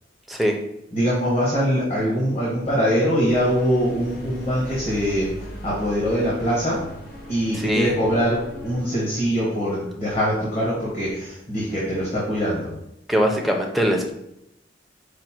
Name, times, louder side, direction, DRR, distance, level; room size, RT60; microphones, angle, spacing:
voice 1, 0.3-0.6 7.5-7.9 13.1-14.1, equal, ahead, 1 dB, 0.5 m, -21 dB
voice 2, 0.9-5.3 5.6-6.8 7.3-12.7, equal, 40° left, -7 dB, 1.3 m, -23 dB
sound 1, 3.3-8.8, equal, 55° left, 0.8 m, -38 dB
5.1 x 2.1 x 4.4 m, 0.80 s
head